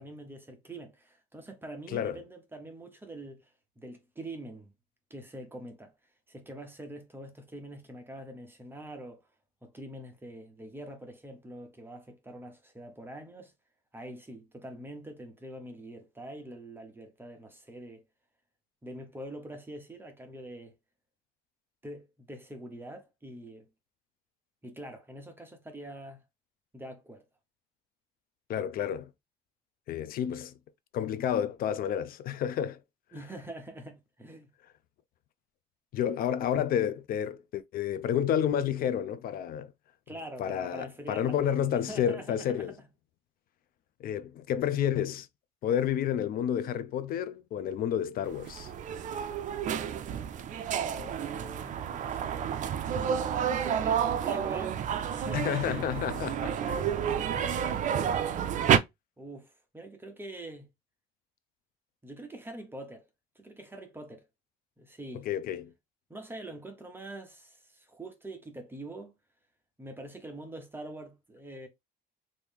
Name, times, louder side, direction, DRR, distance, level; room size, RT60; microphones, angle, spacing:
voice 1, 0.0-4.7 5.1-5.9 6.3-9.2 9.6-13.5 13.9-18.1 18.8-20.8 21.8-23.7 24.6-26.2 26.7-27.2 33.1-34.5 40.1-42.9 50.9-52.6 53.5-56.0 57.3-58.1 59.2-60.7 62.0-63.1 63.4-64.2 64.8-65.3 66.1-69.2 69.8-71.7, right 1 dB, 10° right, 0.8 m, -44 dB
voice 2, 28.5-29.1 29.9-30.5 30.9-32.8 35.9-39.7 40.4-42.7 44.0-45.3 45.6-48.7 55.3-56.9 65.3-65.7, left 9 dB, 60° left, 0.4 m, -30 dB
sound 1, 48.3-58.8, right 8 dB, 50° right, 0.4 m, -30 dB
3.1 x 2.6 x 3.4 m
cardioid pair, 110°, 17 cm